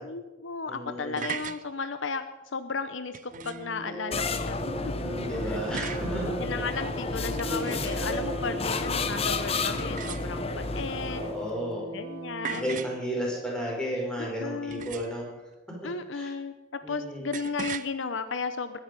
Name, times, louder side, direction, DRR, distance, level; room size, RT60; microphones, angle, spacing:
voice 1, 0.0-2.2 2.5-4.8 5.4-5.6 6.4-11.2 11.9-12.8 14.2-14.9 15.8-18.8, left 4 dB, 65° left, 10 dB, 0.8 m, -34 dB
voice 2, 0.7-1.2 4.6-6.4 7.2-7.8 11.1-11.9 12.5-15.3 16.1-16.3 16.8-17.3, equal, 5° left, -3 dB, 4.8 m, -33 dB
sound 1, 0.9-1.6 3.1-3.7 5.7-6.1 7.2-8.2 9.8-10.6 12.4-13.0 14.7-15.3 17.3-17.9, right 7 dB, 40° right, 0.5 m, -38 dB
sound 2, 3.3-12.9, right 1 dB, 15° right, 4.3 m, -38 dB
sound 3, 4.1-11.5, left 3 dB, 30° left, 0.9 m, -32 dB
20.5 x 10.0 x 5.3 m, 1.2 s
head